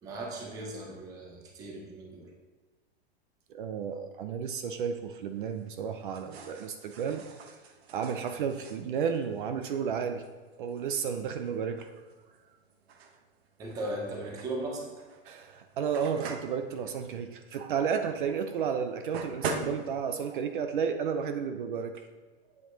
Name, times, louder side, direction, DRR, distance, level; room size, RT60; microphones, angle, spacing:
voice 1, 0.0-2.3 13.6-14.9, right 1 dB, 10° right, 1 dB, 0.7 m, -37 dB
voice 2, 3.5-7.2 7.9-10.2 10.6-11.9 15.3-22.1, right 7 dB, 50° right, 8 dB, 0.6 m, -32 dB
sound 1, 4.9-20.4, right 4 dB, 65° right, 1.1 m, -44 dB
8.2 x 7.5 x 3.9 m, 1.3 s
supercardioid pair, 180°, 33 cm